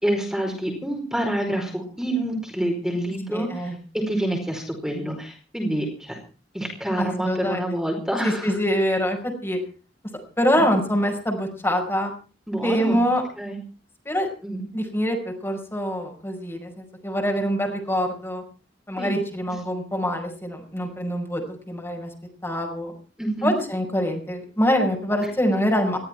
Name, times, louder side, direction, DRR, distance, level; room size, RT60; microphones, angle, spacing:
voice 1, 0.0-3.6 4.1-6.2 6.5-8.6 12.5-13.0 13.4-13.6 14.4-14.6 19.0-19.2 23.2-23.5, right 1 dB, 5° right, 1 dB, 4.8 m, -27 dB
voice 2, 3.3-3.8 7.0-7.6 8.2-9.6 10.4-12.1 12.6-13.2 14.0-14.3 14.7-18.4 18.9-22.1 22.4-22.9 23.4-26.0, equal, 15° left, 2 dB, 5.2 m, -24 dB
20.0 x 15.0 x 4.5 m, 0.37 s
head